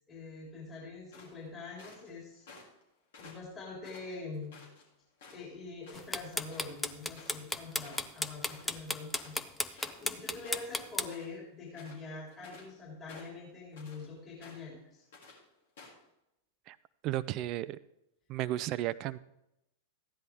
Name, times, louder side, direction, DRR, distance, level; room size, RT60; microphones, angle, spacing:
voice 1, 0.1-2.5 3.2-4.6 5.3-15.0, left 3 dB, 25° left, -4 dB, 4.0 m, -45 dB
sound 1, 1.1-2.1 2.5-2.8 3.1-4.8 5.2-5.6 5.8-6.1 6.3-10.2 10.4-11.4 11.7-12.7 13.1-14.1 14.4-14.8 15.1-15.4 15.8-16.0, left 3 dB, 65° left, 3.3 m, -53 dB
sound 2, 5.9-11.1, left 2 dB, 10° left, 0.6 m, -33 dB
voice 2, 17.0-17.8 18.3-19.2, right 14 dB, 45° right, 17 dB, 0.4 m, -33 dB
14.5 x 10.0 x 3.6 m, 0.86 s
figure-of-eight pair, 95°, 0 cm